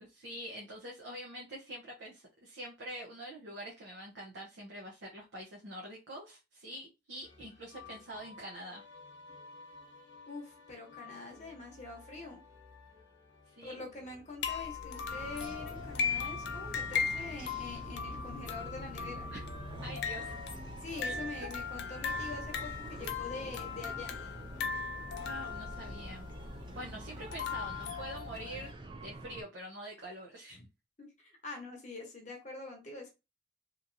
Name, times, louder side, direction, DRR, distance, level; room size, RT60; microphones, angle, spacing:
voice 1, 0.0-8.8 13.5-13.9 19.3-19.4 19.8-20.4 21.0-21.1 21.4-21.5 25.2-26.3 26.7-28.7 29.0-30.6, right 1 dB, 75° right, -2 dB, 0.7 m, -45 dB
sound 1, 7.2-25.3, left 3 dB, 85° left, 0.8 m, -57 dB
voice 2, 10.3-12.4 13.6-19.3 20.8-24.2 31.0-33.1, left 3 dB, 40° left, 2 dB, 0.8 m, -45 dB
sound 2, 14.4-28.7, left 5 dB, 60° left, 0.4 m, -38 dB
sound 3, 15.1-29.4, right 2 dB, 25° right, 0.4 m, -47 dB
2.9 x 2.5 x 2.6 m, 0.27 s
head